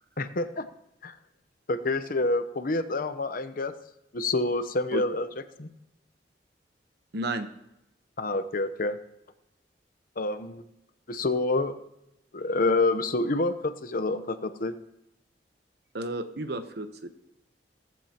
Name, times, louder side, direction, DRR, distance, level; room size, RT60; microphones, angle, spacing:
voice 1, 0.2-0.7 1.0-1.1 1.7-3.7 4.1-5.3 5.6-5.7 8.2-9.0 10.2-10.6 11.1-11.7 12.3-14.7, left 2 dB, 55° left, 11 dB, 0.8 m, -27 dB
voice 2, 7.1-7.5 15.9-17.1, right 2 dB, 65° right, 8 dB, 1.0 m, -32 dB
17.0 x 15.0 x 2.9 m, 0.86 s
head